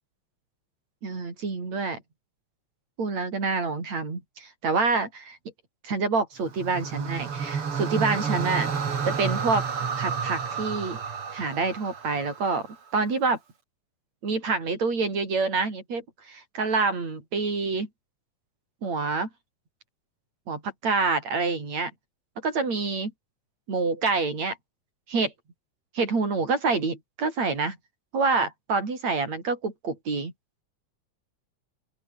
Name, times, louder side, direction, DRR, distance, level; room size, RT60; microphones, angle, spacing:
voice 1, 1.0-2.0 3.0-5.4 5.8-8.7 9.1-9.6 10.0-11.0 11.3-12.7 12.9-13.4 14.2-17.9 18.8-19.3 20.5-21.9 22.4-23.1 23.7-24.6 25.1-25.3 25.9-27.8 28.1-30.3, right 4 dB, 65° right, 7.1 m, -27 dB
sound 1, 6.4-12.8, right 6 dB, 45° right, 3.5 m, -30 dB
open air
omnidirectional pair, 3.4 m